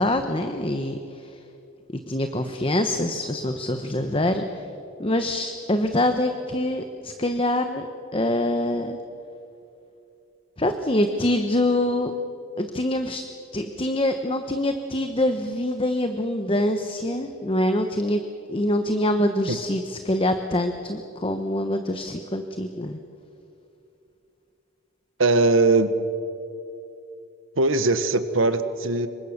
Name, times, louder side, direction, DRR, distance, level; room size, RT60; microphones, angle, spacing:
voice 1, 0.0-1.4 2.1-4.6 5.0-9.0 10.6-12.1 12.6-13.2 13.5-18.2 18.5-23.0, left 1 dB, 25° left, 7 dB, 1.1 m, -25 dB
voice 2, 25.2-25.9 27.6-29.1, right 3 dB, 80° right, 11 dB, 1.4 m, -20 dB
27.0 x 24.0 x 6.7 m, 2.7 s
head